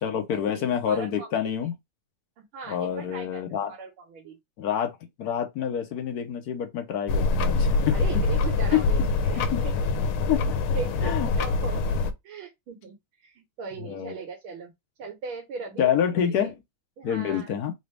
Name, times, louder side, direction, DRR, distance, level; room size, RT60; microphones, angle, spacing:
voice 1, 0.0-1.7 2.7-3.7 4.6-4.9 5.2-7.9 8.7-8.8 9.5-9.6 10.3-10.4 11.0-11.3 13.8-14.1 15.8-16.6 17.0-17.7, left 9 dB, 65° left, 1.0 m, -27 dB
voice 2, 0.5-1.3 2.4-4.4 7.9-10.2 10.7-14.7 15.0-15.9 16.2-16.5 17.0-17.5, right 4 dB, 75° right, 1.9 m, -39 dB
sound 1, 7.1-12.1, left 3 dB, 90° left, 1.5 m, -24 dB
4.0 x 2.7 x 3.2 m
omnidirectional pair, 2.3 m